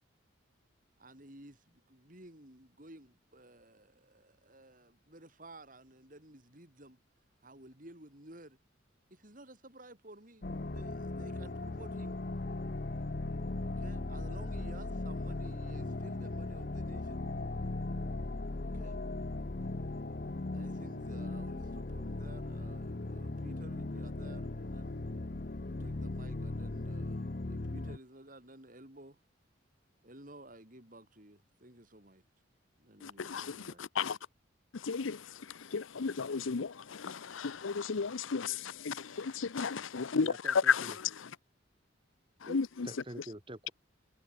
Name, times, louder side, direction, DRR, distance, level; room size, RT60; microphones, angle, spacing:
voice 1, 1.0-7.0 7.4-8.6 9.1-10.5 10.7-12.2 13.6-17.2 18.6-19.0 20.5-25.0 25.6-29.2 30.0-32.2 32.8-33.9, right 1 dB, 40° right, 5.2 m, -54 dB
sound 1, 10.4-28.0, left 2 dB, 45° left, 0.8 m, -38 dB
voice 2, 33.0-34.2 34.7-41.3 42.4-42.9, left 5 dB, 80° left, 0.7 m, -34 dB
voice 3, 40.2-41.0 42.5-42.6 42.8-43.7, right 1 dB, 25° right, 2.4 m, -46 dB
head